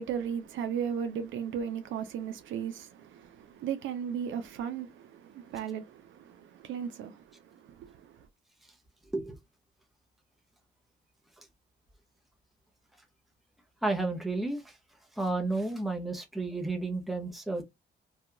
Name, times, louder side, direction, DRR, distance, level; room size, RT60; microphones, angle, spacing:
voice 1, 0.0-8.3, right 8 dB, 75° right, 0.5 m, -36 dB
voice 2, 13.8-14.7 15.2-17.6, right 2 dB, ahead, 0.7 m, -31 dB
2.8 x 2.3 x 2.4 m
cardioid pair, 90°, 20 cm